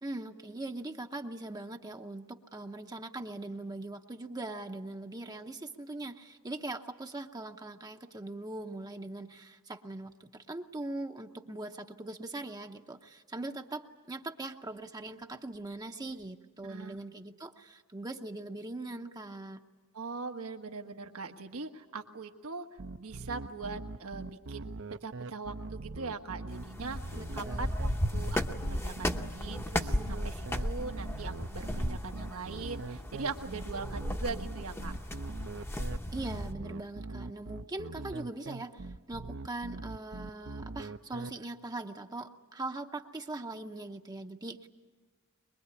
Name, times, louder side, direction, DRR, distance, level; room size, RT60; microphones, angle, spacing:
voice 1, 0.0-19.6 27.2-27.8 36.1-44.7, right 2 dB, 20° right, 4 dB, 0.7 m, -41 dB
voice 2, 16.6-17.0 19.9-22.7 23.0-34.9, right 4 dB, 85° right, 5 dB, 1.4 m, -41 dB
sound 1, 22.8-41.3, right 3 dB, 60° right, 0.7 m, -42 dB
sound 2, 26.5-36.5, left 1 dB, 10° left, 0.8 m, -35 dB
23.0 x 22.0 x 9.6 m, 1.3 s
head